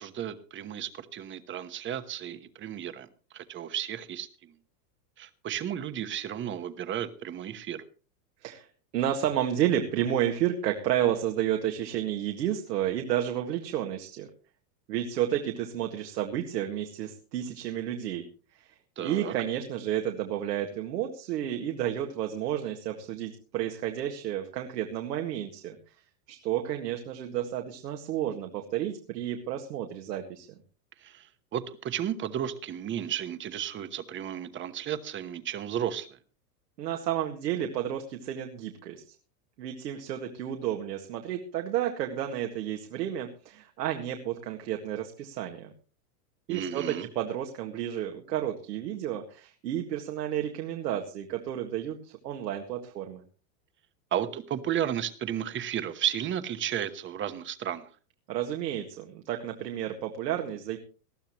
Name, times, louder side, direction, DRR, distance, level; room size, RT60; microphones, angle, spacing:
voice 1, 0.0-3.1 3.3-4.5 5.2-7.8 19.0-19.3 31.0-31.3 31.5-36.1 46.5-47.1 54.1-57.9, right 10 dB, 25° right, 11 dB, 1.1 m, -33 dB
voice 2, 8.9-14.3 14.9-18.2 18.5-25.9 26.3-30.5 36.8-39.0 39.6-45.7 46.5-53.2 58.3-60.8, right 11 dB, 80° right, 3 dB, 2.0 m, -31 dB
19.5 x 13.0 x 3.0 m, 0.37 s
supercardioid pair, 130°, 49 cm